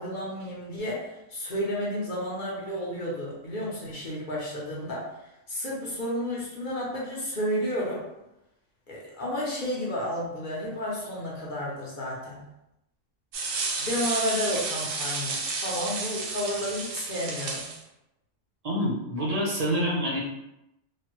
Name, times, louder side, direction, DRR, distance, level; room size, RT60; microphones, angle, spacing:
voice 1, 0.0-5.1 5.5-8.0 8.9-12.4 13.8-17.7, equal, 45° left, -5 dB, 0.8 m, -31 dB
sound 1, 13.3-17.8, right 3 dB, 85° right, 1.0 m, -31 dB
voice 2, 18.6-20.2, equal, 35° right, -4 dB, 0.7 m, -27 dB
3.2 x 2.1 x 2.9 m, 0.87 s
omnidirectional pair, 1.3 m